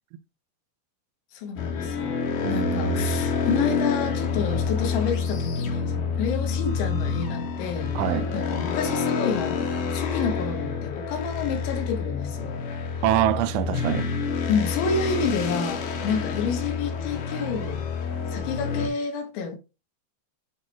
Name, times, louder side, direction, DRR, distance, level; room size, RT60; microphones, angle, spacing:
voice 1, 1.3-2.2 2.5-12.7 14.5-17.8 18.3-19.6, left 5 dB, 80° left, 3.9 m, -29 dB
sound 1, 1.6-18.9, left 5 dB, 60° left, 2.5 m, -28 dB
voice 2, 2.4-3.2 7.9-8.3 13.0-14.1, right 12 dB, 90° right, 3.2 m, -25 dB
9.5 x 3.9 x 3.0 m
omnidirectional pair, 5.3 m